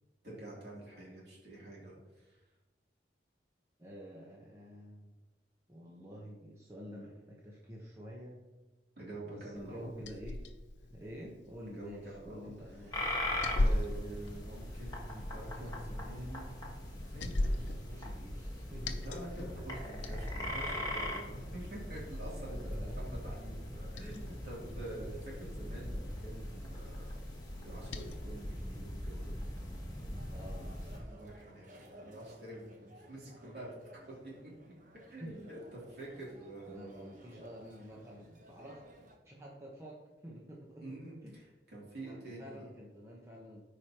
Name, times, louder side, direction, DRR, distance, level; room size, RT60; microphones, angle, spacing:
voice 1, 0.2-2.4 9.0-10.0 11.7-16.6 17.1-17.7 19.0-27.1 27.6-29.3 31.0-34.5 35.1-37.1 40.8-42.7, right 1 dB, 60° right, -5 dB, 3.0 m, -47 dB
voice 2, 3.8-5.1 5.7-8.5 9.3-10.5 10.8-13.1 17.6-19.2 20.7-20.9 22.5-23.0 24.6-25.1 30.3-30.7 35.2-35.3 36.7-38.8 39.2-41.4 42.1-43.6, equal, 15° right, -4 dB, 1.0 m, -49 dB
Liquid, 9.6-28.2, left 1 dB, 85° left, 0.6 m, -41 dB
sound 1, 12.9-31.0, left 1 dB, 20° left, 1.4 m, -41 dB
sound 2, 30.1-39.2, equal, 45° right, 1.0 m, -57 dB
13.5 x 5.0 x 3.0 m, 1.1 s
head